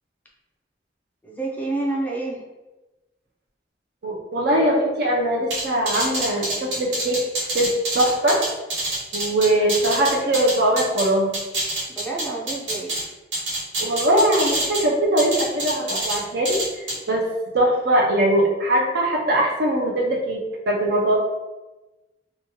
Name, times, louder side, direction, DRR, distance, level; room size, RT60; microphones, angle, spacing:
voice 1, 1.2-2.5 11.9-13.0, right 2 dB, 10° left, -2 dB, 0.4 m, -28 dB
voice 2, 4.0-7.2 7.5-8.4 9.1-11.3 13.8-17.2 17.5-21.1, right 1 dB, 65° right, -1 dB, 0.6 m, -21 dB
sound 1, 5.5-11.1 11.3-13.0 13.3-14.8 15.2-16.2 16.4-16.9, right 1 dB, 80° right, 1.1 m, -26 dB
2.9 x 2.3 x 2.9 m, 1.1 s
head